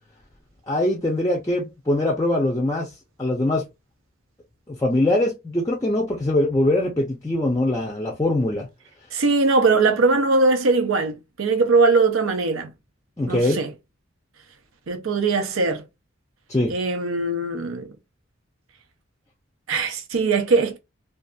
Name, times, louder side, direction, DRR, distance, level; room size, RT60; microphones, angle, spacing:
voice 1, 0.7-2.9 3.2-3.6 4.7-8.7 13.2-13.6 16.5-16.7, left 1 dB, 15° left, 0.4 m, -22 dB
voice 2, 9.1-12.7 13.3-13.7 14.9-15.8 16.7-17.9 19.7-20.8, right 3 dB, 85° right, 0.6 m, -20 dB
2.7 x 2.3 x 2.3 m
head